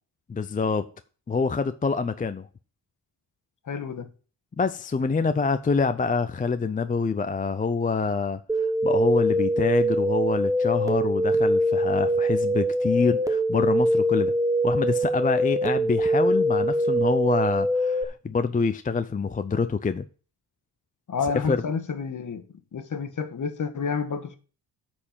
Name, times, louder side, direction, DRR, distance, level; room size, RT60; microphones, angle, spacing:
voice 1, 0.3-0.9 1.3-2.5 4.6-14.3 14.6-20.0 21.5-21.6, left 4 dB, 20° left, 0.5 m, -26 dB
voice 2, 3.7-4.1 21.1-22.4 22.7-24.4, left 6 dB, 50° left, 1.4 m, -29 dB
sound 1, 8.5-18.0, right 1 dB, 10° right, 1.0 m, -23 dB
9.9 x 4.5 x 7.3 m
cardioid pair, 110°, 40 cm